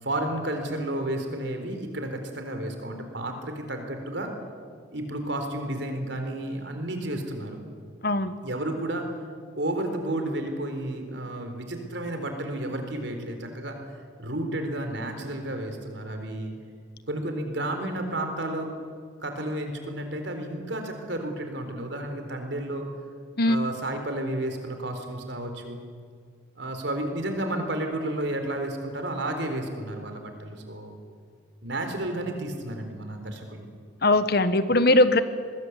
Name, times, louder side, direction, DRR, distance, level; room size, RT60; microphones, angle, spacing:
voice 1, 0.0-4.3 4.9-7.6 8.4-9.1 9.6-13.8 14.2-16.5 17.1-18.7 19.2-22.8 23.4-25.8 26.6-30.9 31.6-33.7, right 1 dB, 65° right, 5 dB, 4.0 m, -32 dB
voice 2, 34.0-35.2, left 2 dB, 50° left, 12 dB, 1.3 m, -20 dB
25.0 x 20.5 x 8.3 m, 2.1 s
head